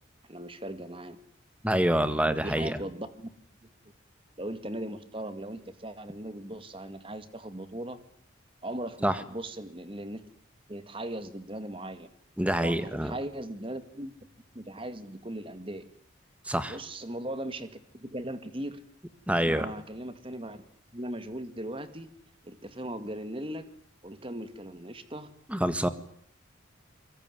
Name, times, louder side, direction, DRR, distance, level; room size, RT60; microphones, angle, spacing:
voice 1, 0.3-1.2 2.3-3.3 4.4-8.0 8.6-10.2 10.7-12.1 12.6-14.1 14.5-15.8 16.7-18.8 19.4-20.6 20.9-22.1 22.4-23.7 24.0-25.3, right 1 dB, 25° right, 11 dB, 2.1 m, -38 dB
voice 2, 1.6-2.8 9.0-9.1 12.4-13.1 16.5-16.8 19.3-19.7 25.5-25.9, right 1 dB, 5° right, 12 dB, 1.7 m, -26 dB
24.5 x 23.5 x 9.5 m, 0.64 s
head